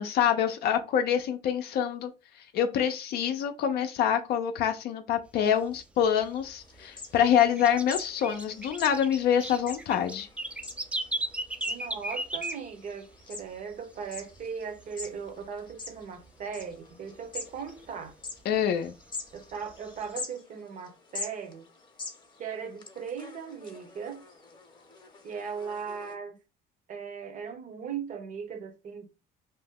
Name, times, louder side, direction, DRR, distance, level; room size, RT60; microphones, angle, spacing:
voice 1, 0.0-10.3 18.5-18.9, left 9 dB, 70° left, 0.4 m, -26 dB
sound 1, 5.3-6.8 7.1-13.2 13.5-13.6 13.9-14.4 14.7-15.9 16.2-16.3 16.7-16.8 17.2-18.4 18.9-20.2, right 1 dB, 5° right, 0.3 m, -36 dB
sound 2, 6.6-26.2, left 3 dB, 25° left, 0.7 m, -45 dB
voice 2, 11.7-18.2 19.3-21.7 22.4-24.2 25.2-26.4 26.9-29.1, right 6 dB, 50° right, 0.7 m, -38 dB
2.7 x 2.1 x 3.5 m
cardioid pair, 110°, 17 cm